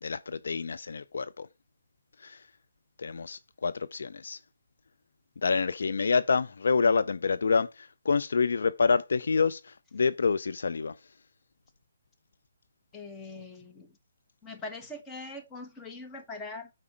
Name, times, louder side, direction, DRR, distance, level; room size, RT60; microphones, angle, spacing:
voice 1, 0.0-1.5 2.2-2.4 3.0-4.4 5.4-11.0, left 5 dB, 65° left, 0.5 m, -27 dB
voice 2, 12.9-14.0 14.4-16.7, left 2 dB, 15° left, 1.5 m, -42 dB
8.5 x 4.9 x 4.4 m
figure-of-eight pair, 140°, 0 cm